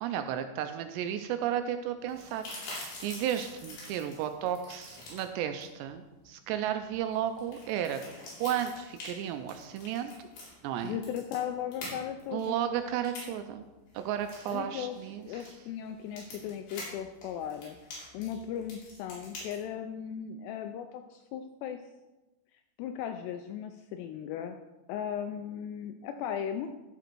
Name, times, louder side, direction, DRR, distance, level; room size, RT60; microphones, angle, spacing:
voice 1, 0.0-8.0 8.4-10.3 10.6-11.0 12.3-13.6 13.9-15.2, right 10 dB, 80° right, 8 dB, 2.6 m, -33 dB
sound 1, 2.0-19.5, left 2 dB, 60° left, 4.9 m, -47 dB
voice 2, 10.8-12.6 14.5-15.0 15.3-17.8 18.1-21.8 22.8-24.6 24.9-26.7, left 9 dB, 85° left, 6 dB, 2.4 m, -37 dB
13.5 x 5.1 x 4.5 m, 1.1 s
omnidirectional pair, 5.3 m